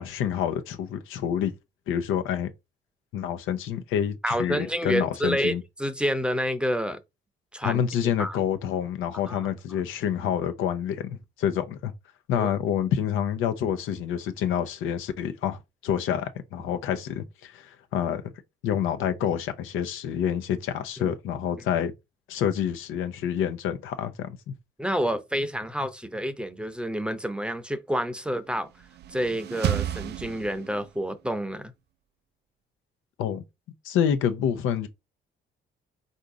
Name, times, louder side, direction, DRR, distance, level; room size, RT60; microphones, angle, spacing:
voice 1, 0.0-1.5 1.9-2.5 3.1-5.6 7.6-11.9 12.3-18.3 18.6-21.9 22.3-24.5 33.2-33.4 33.8-34.9, left 9 dB, 90° left, 0.7 m, -28 dB
voice 2, 4.2-7.0 7.5-7.8 8.2-8.4 9.3-9.4 12.3-12.5 21.0-21.1 24.8-28.7 29.1-31.7, equal, 5° right, 0.6 m, -28 dB
sound 1, 28.7-31.1, right 12 dB, 55° right, 0.4 m, -31 dB
3.8 x 2.7 x 4.7 m
cardioid pair, 90°, 20 cm